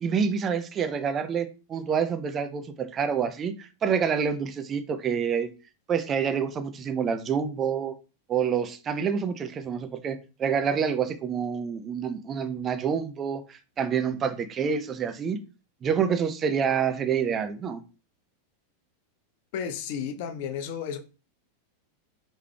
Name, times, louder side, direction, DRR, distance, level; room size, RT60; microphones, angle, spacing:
voice 1, 0.0-5.5 5.9-7.9 8.3-15.4 15.8-17.8, right 7 dB, 25° right, 0.5 m, -27 dB
voice 2, 19.5-21.0, left 7 dB, 50° left, 0.6 m, -32 dB
4.9 x 3.0 x 2.3 m
figure-of-eight pair, 90°, 0 cm